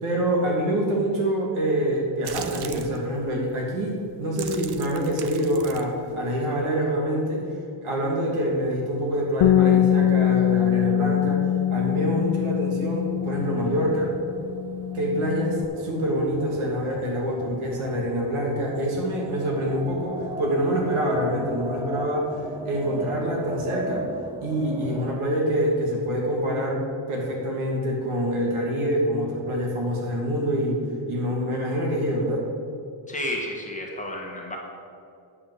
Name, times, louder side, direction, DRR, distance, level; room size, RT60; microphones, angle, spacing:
voice 1, 0.0-7.5 7.8-14.1 14.9-22.3 22.6-24.0 24.4-30.8 31.1-32.4, equal, 75° right, -1 dB, 2.6 m, -26 dB
sound 1, 2.2-3.0 3.7-3.9 4.2-6.7, right 8 dB, 55° right, 0.7 m, -39 dB
sound 2, 8.5-25.1, right 1 dB, 10° right, 0.4 m, -38 dB
Bass guitar, 9.4-15.7, left 11 dB, 65° left, 0.5 m, -23 dB
voice 2, 33.1-34.6, left 1 dB, 15° left, -2 dB, 1.6 m, -32 dB
9.4 x 5.8 x 7.7 m, 2.5 s
wide cardioid pair, 165°, 49 cm